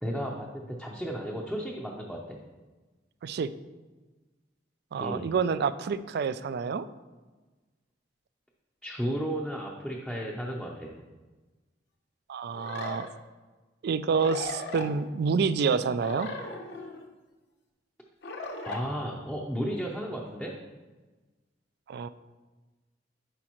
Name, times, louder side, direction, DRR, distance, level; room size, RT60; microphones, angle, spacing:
voice 1, 0.0-2.4 5.0-5.3 8.8-11.0 18.6-20.5, equal, ahead, -3 dB, 0.6 m, -34 dB
voice 2, 4.9-6.9 12.3-13.1 13.8-16.3 21.9-22.1, right 5 dB, 60° right, 14 dB, 0.3 m, -28 dB
sound 1, 12.5-13.1 14.1-14.9 16.0-17.0 18.2-18.8, left 3 dB, 65° left, 0.9 m, -37 dB
10.5 x 4.9 x 3.0 m, 1.2 s
head